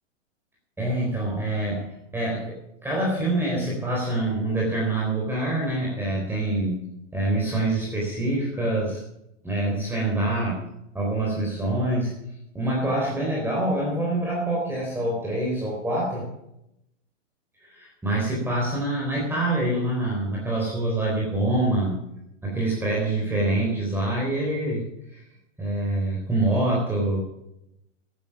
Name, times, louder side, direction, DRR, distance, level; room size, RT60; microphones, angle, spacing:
voice 1, 0.8-2.5 2.8-6.9 7.1-9.0 9.4-10.6 10.9-12.1 12.5-16.2 17.6-22.0 22.4-24.8 25.1-25.2 25.6-27.2, right 1 dB, 5° right, -3 dB, 3.9 m, -25 dB
12.5 x 10.5 x 7.3 m, 0.82 s
hypercardioid pair, 135°, 38 cm